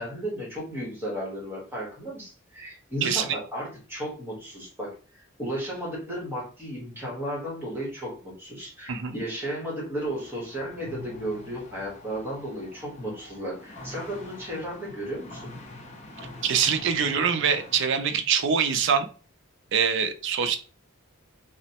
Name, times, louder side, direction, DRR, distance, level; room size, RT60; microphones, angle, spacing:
voice 1, 0.0-15.5, equal, 10° right, -5 dB, 1.1 m, -34 dB
sound 1, 10.0-17.8, left 2 dB, 35° left, 0.5 m, -45 dB
voice 2, 16.4-19.1 19.7-20.6, right 7 dB, 60° right, 8 dB, 0.4 m, -24 dB
2.9 x 2.0 x 2.8 m, 0.37 s
head